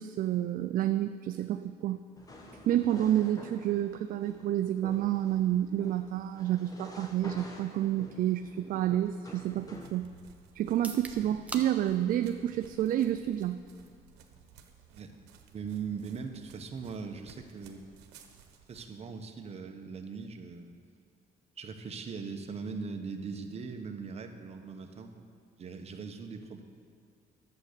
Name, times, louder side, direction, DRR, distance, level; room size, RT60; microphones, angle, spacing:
voice 1, 0.0-2.0 2.7-10.1 10.6-13.6, right 12 dB, 55° right, 9 dB, 0.4 m, -29 dB
sound 1, 2.2-10.0, left 1 dB, 20° left, 1.4 m, -49 dB
sound 2, 9.4-18.9, right 7 dB, 90° right, 1.1 m, -57 dB
sound 3, 10.7-24.5, right 2 dB, 10° right, 1.0 m, -53 dB
voice 2, 15.5-17.9 18.7-20.8 21.6-25.3 25.6-26.6, right 5 dB, 40° right, 5 dB, 1.1 m, -40 dB
11.0 x 7.7 x 6.8 m, 2.4 s
cardioid pair, 110°, 17 cm